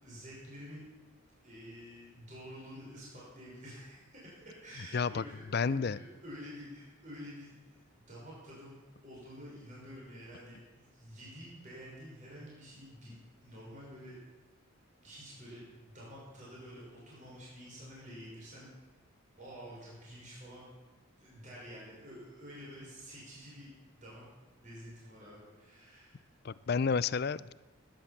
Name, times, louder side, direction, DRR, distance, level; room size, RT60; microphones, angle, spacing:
voice 1, 0.0-0.9 1.4-14.2 15.0-18.7 19.4-20.7 21.2-24.3 24.6-26.3, equal, 35° right, -6 dB, 5.9 m, -49 dB
voice 2, 4.9-5.2 5.5-6.0 26.4-27.5, left 5 dB, 50° left, 18 dB, 0.5 m, -30 dB
18.5 x 10.5 x 7.3 m, 1.3 s
head